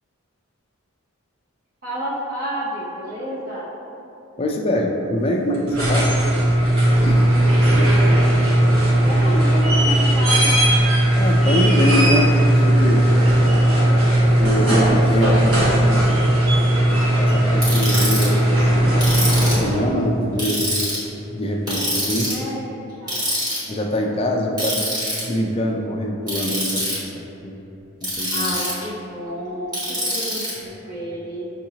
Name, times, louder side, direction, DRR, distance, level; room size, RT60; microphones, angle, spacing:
voice 1, 1.8-3.6 7.6-8.6 9.0-10.5 21.8-21.9 22.2-23.3 28.3-31.5, equal, 45° right, -8 dB, 0.8 m, -30 dB
voice 2, 4.4-6.1 7.0-7.3 11.1-13.1 14.4-15.5 16.9-20.9 21.3-22.4 23.7-24.9 25.2-27.7 28.0-28.6, equal, 25° left, 1 dB, 0.3 m, -24 dB
sound 1, 5.5-19.9 21.7-21.8, right 1 dB, 80° right, 1.1 m, -17 dB
Ratchet pawl, 17.6-18.2 19.0-19.7 20.4-21.0 21.7-22.4 23.1-23.6 24.6-25.2 26.3-26.9 28.0-28.8 29.7-30.5, equal, 20° right, 1.4 m, -24 dB
5.7 x 2.7 x 2.8 m, 3.0 s
head